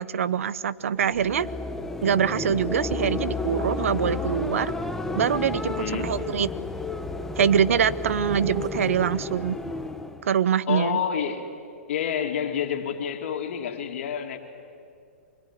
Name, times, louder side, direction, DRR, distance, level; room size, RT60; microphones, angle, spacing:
voice 1, 0.0-1.5 2.0-4.7 5.1-6.5 7.4-9.6 10.2-11.0, right 8 dB, 75° right, 18 dB, 0.8 m, -24 dB
sound 1, 0.9-10.3, left 2 dB, 5° left, 1.3 m, -31 dB
voice 2, 5.8-6.1 10.7-11.5 11.9-14.4, left 8 dB, 60° left, 5 dB, 2.8 m, -28 dB
24.0 x 21.0 x 10.0 m, 2.4 s
hypercardioid pair, 135°, 8 cm